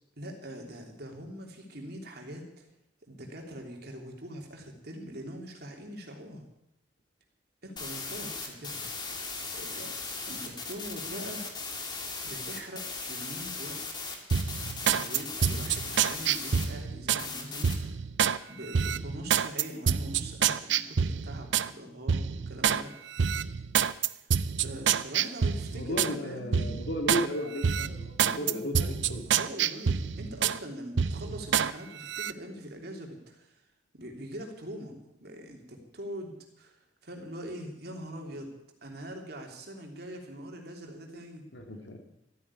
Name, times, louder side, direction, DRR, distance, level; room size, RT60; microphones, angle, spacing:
voice 1, 0.2-2.7 3.0-6.5 7.6-8.9 9.5-9.9 10.2-11.4 12.2-13.8 14.8-17.9 18.5-23.2 24.1-24.2 24.6-26.7 28.3-28.7 29.3-33.6 33.9-38.5 38.8-41.5, equal, 60° right, 2 dB, 3.2 m, -43 dB
sound 1, 7.8-16.6 17.2-17.8, left 4 dB, 25° left, 2.3 m, -38 dB
sound 2, 14.3-17.3 17.6-18.4 18.7-21.7 22.1-22.8 23.2-26.1 26.5-27.3 27.6-30.6 31.0-31.7 32.1-32.3, right 7 dB, 85° right, 0.6 m, -27 dB
voice 2, 25.7-29.2 41.5-42.0, equal, 75° left, 4 dB, 2.5 m, -34 dB
13.5 x 9.4 x 9.9 m, 0.82 s
head